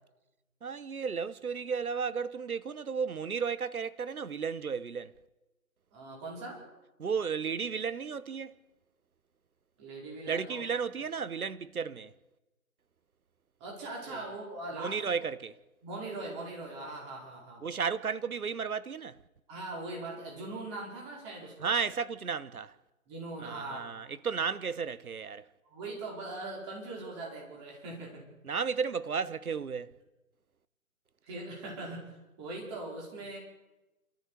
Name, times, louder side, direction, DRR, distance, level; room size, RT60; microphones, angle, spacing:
voice 1, 0.6-5.2 7.0-8.6 10.3-12.1 14.1-14.2 14.8-15.5 17.6-19.2 21.6-22.7 23.4-25.4 28.4-29.9, right 6 dB, 70° right, 1.1 m, -33 dB
voice 2, 5.9-6.6 9.8-10.6 13.6-15.1 15.8-17.6 19.5-21.7 23.1-23.9 25.6-28.2 31.3-32.1 32.4-33.4, right 2 dB, 20° right, 4.7 m, -41 dB
28.5 x 13.5 x 6.9 m
figure-of-eight pair, 160°, 44 cm